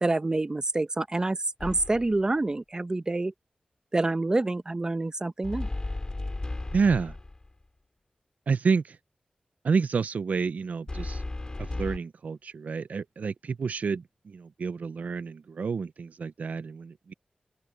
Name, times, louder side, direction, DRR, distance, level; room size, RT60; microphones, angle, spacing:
voice 1, 0.0-3.3 3.9-5.7, right 2 dB, 30° right, 1.1 m, -27 dB
sound 1, 1.6-2.2 5.4-7.5 10.9-12.0, left 2 dB, 30° left, 2.4 m, -34 dB
voice 2, 6.7-7.2 8.5-9.0 9.6-11.2 11.6-17.1, right 5 dB, 90° right, 0.6 m, -29 dB
open air
wide cardioid pair, 100°, 3 cm